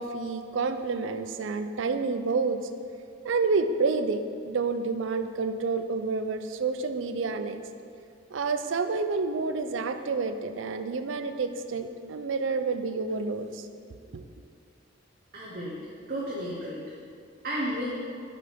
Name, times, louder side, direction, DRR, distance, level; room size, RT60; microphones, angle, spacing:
voice 1, 0.0-2.6 3.2-7.6 8.3-13.7 14.1-14.2, right 4 dB, 80° right, 9 dB, 0.5 m, -29 dB
voice 2, 15.3-15.8 16.1-16.9 17.4-17.9, equal, 50° right, -6 dB, 1.1 m, -32 dB
6.6 x 5.7 x 5.2 m, 2.3 s
head